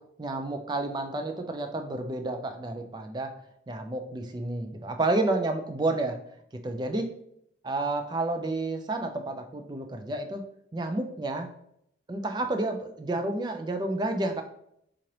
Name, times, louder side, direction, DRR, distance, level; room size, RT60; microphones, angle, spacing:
voice 1, 0.2-3.3 3.7-6.2 6.6-7.1 7.6-10.4 10.7-11.5 12.1-14.4, right 2 dB, 20° right, 6 dB, 0.3 m, -30 dB
3.7 x 3.1 x 2.9 m, 0.73 s
head